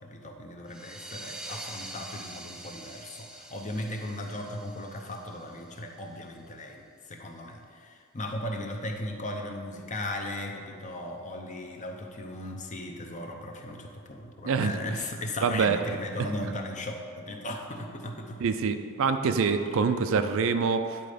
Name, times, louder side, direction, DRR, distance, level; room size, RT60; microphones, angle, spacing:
voice 1, 0.0-18.4, left 1 dB, 35° left, 2 dB, 0.8 m, -37 dB
sound 1, 0.7-6.0, right 1 dB, 5° right, 0.4 m, -45 dB
voice 2, 14.4-14.8 15.4-15.8 18.4-21.0, right 5 dB, 65° right, 8 dB, 0.4 m, -25 dB
9.9 x 4.2 x 5.1 m, 2.2 s
head